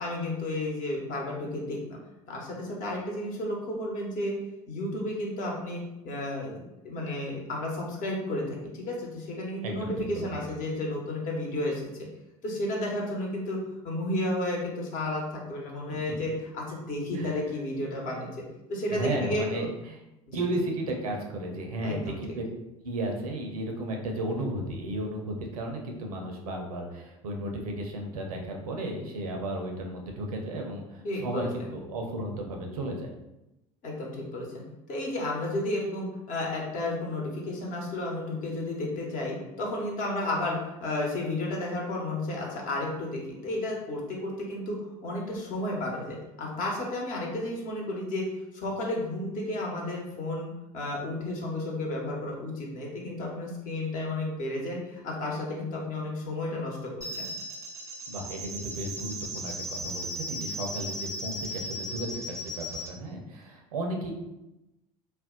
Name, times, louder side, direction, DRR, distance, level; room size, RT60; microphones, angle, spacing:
voice 1, 0.0-1.8 2.3-4.3 4.7-12.1 12.4-13.6 13.8-18.3 18.7-19.7 20.3-20.7 21.8-22.2 31.0-31.7 33.8-34.6 34.9-48.2 48.5-57.3, left 1 dB, 45° left, -2 dB, 1.0 m, -32 dB
voice 2, 9.6-10.3 17.1-17.4 18.9-20.0 20.3-22.4 22.8-33.1 58.1-64.1, right 1 dB, 80° right, 2 dB, 0.6 m, -34 dB
sound 1, 57.0-62.9, equal, 15° right, 0.6 m, -37 dB
2.5 x 2.1 x 3.7 m, 0.94 s
hypercardioid pair, 70°, 18 cm